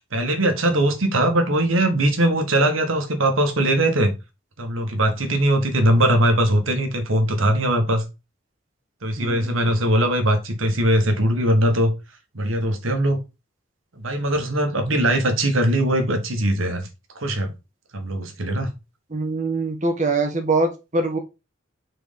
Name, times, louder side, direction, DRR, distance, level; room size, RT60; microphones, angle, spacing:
voice 1, 0.1-4.1 4.6-8.0 9.0-11.9 12.3-13.2 14.0-16.9 17.1-17.5 17.9-18.7, right 1 dB, 85° right, 1.5 m, -20 dB
voice 2, 9.2-9.7 14.9-15.1 19.1-21.2, right 3 dB, 35° right, 1.4 m, -24 dB
4.5 x 4.5 x 5.1 m
head